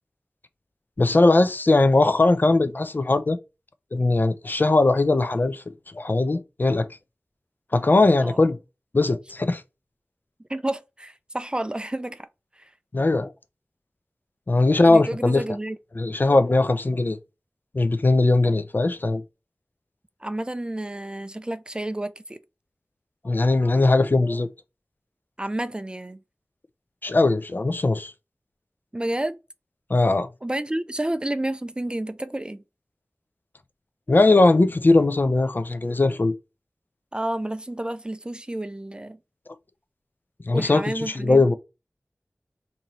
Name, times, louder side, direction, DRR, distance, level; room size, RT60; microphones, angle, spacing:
voice 1, 1.0-3.4 3.9-5.6 5.9-6.9 7.7-8.6 8.9-9.6 12.9-13.3 14.5-15.4 16.0-17.2 17.7-19.2 23.2-24.5 27.0-28.1 29.9-30.3 34.1-36.3 40.5-41.5, left 2 dB, 45° left, 0.4 m, -20 dB
voice 2, 10.5-12.3 12.6-12.7 14.8-15.8 20.2-22.4 25.4-26.2 28.9-29.4 30.4-32.6 37.1-39.2 40.5-41.4, right 1 dB, 20° right, 0.3 m, -30 dB
3.0 x 2.7 x 4.0 m
wide cardioid pair, 60°, 5 cm